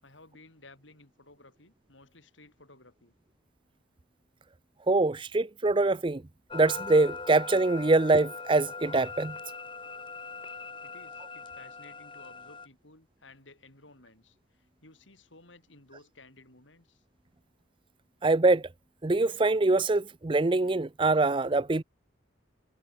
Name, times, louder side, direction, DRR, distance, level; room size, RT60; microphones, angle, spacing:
voice 1, 0.0-3.1 10.8-14.4 14.8-17.0, left 2 dB, 75° left, 7.0 m, -55 dB
voice 2, 4.9-6.2 6.5-9.4 18.2-18.7 19.0-21.8, right 2 dB, 25° right, 0.5 m, -24 dB
sound 1, 6.5-12.7, left 4 dB, 25° left, 6.1 m, -41 dB
head